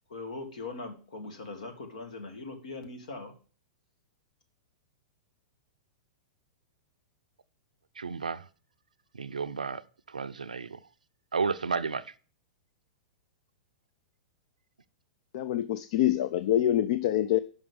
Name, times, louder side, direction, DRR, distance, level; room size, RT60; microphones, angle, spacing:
voice 1, 0.1-3.3, left 3 dB, 70° left, 1.7 m, -40 dB
voice 2, 8.0-8.5 9.1-10.8 11.3-12.1, right 5 dB, 90° right, 0.4 m, -32 dB
voice 3, 15.3-17.4, left 12 dB, 55° left, 0.4 m, -25 dB
6.0 x 5.3 x 6.9 m
hypercardioid pair, 105°, 4 cm